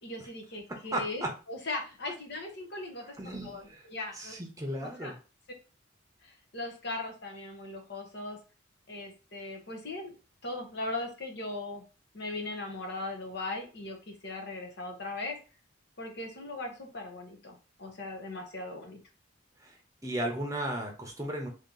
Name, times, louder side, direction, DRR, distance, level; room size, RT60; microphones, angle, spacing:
voice 1, 0.0-4.3 4.8-5.1 6.2-8.4 8.9-10.1 10.4-11.8 12.1-15.4 16.0-19.0, left 2 dB, 55° left, 2 dB, 1.0 m, -39 dB
voice 2, 0.9-1.3 3.2-3.8 4.1-5.2 19.6-19.8 20.0-21.5, right 1 dB, 15° right, 1 dB, 0.8 m, -35 dB
2.9 x 2.9 x 3.8 m, 0.33 s
head